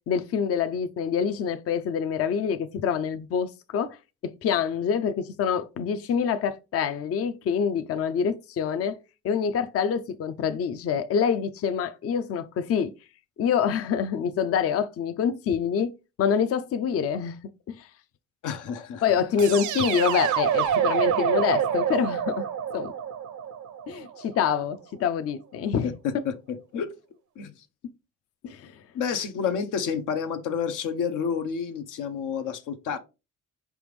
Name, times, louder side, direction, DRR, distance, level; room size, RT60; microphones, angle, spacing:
voice 1, 0.1-4.0 4.2-9.0 9.2-12.9 13.4-15.9 16.2-17.4 17.7-17.9 19.0-22.5 22.7-22.9 23.9-25.9 28.4-28.8, left 7 dB, 50° left, 0.5 m, -26 dB
voice 2, 18.4-19.0 25.8-26.9 27.4-27.5 28.9-33.0, left 6 dB, 85° left, 0.8 m, -29 dB
sound 1, 19.4-24.3, right 8 dB, 70° right, 0.7 m, -27 dB
5.0 x 3.5 x 3.1 m
cardioid pair, 90°, 30 cm